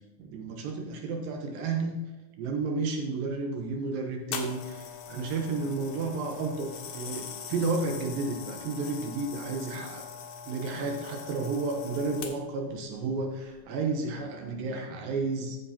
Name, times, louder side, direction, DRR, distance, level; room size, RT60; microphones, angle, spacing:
voice 1, 0.2-2.0 2.4-10.1 10.5-15.6, right 3 dB, 85° right, 2 dB, 2.7 m, -32 dB
sound 1, 4.3-12.6 13.4-13.6, left 7 dB, 65° left, 2.1 m, -42 dB
14.0 x 7.3 x 2.8 m, 1.2 s
omnidirectional pair, 4.0 m